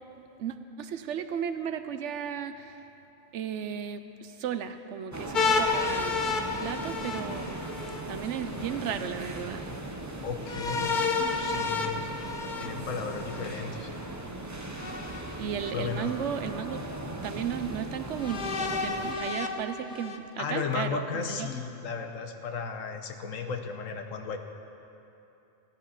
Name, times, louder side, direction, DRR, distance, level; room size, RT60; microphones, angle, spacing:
voice 1, 0.4-2.8 3.3-7.6 8.1-9.6 15.4-16.8 17.2-21.5, right 8 dB, 70° right, 10 dB, 0.9 m, -35 dB
sound 1, 5.1-19.2, right 1 dB, 15° right, 0.7 m, -38 dB
sound 2, 5.3-8.0 10.4-13.5 14.8-15.7 16.5-16.6 18.2-20.2, left 4 dB, 45° left, 0.8 m, -31 dB
voice 2, 10.2-11.0 11.4-12.1 12.6-13.9 15.7-16.1 20.4-24.4, left 5 dB, 80° left, 6 dB, 1.3 m, -34 dB
15.0 x 10.5 x 5.7 m, 2.9 s
omnidirectional pair, 1.4 m